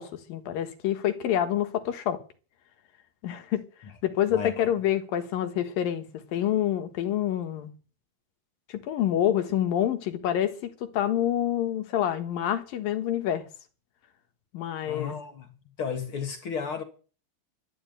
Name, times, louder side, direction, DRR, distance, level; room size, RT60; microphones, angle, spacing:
voice 1, 0.0-2.2 3.2-3.6 4.0-6.0 6.3-7.7 8.7-13.5 14.5-15.1, left 11 dB, 75° left, 3.2 m, -27 dB
voice 2, 4.3-4.7 14.8-15.5 15.8-16.8, left 6 dB, 45° left, 2.2 m, -33 dB
12.5 x 9.8 x 9.3 m
omnidirectional pair, 4.2 m